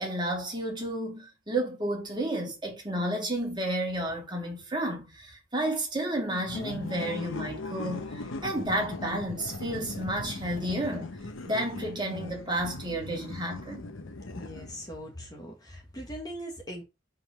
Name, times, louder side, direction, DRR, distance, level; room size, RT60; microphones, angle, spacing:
voice 1, 0.0-8.0 8.4-11.1 11.4-13.8, right 1 dB, 25° right, 2.2 m, -31 dB
sound 1, 6.4-15.0, left 2 dB, 75° left, 0.9 m, -39 dB
voice 2, 14.3-16.8, equal, 20° left, 1.4 m, -40 dB
5.3 x 4.0 x 5.6 m
head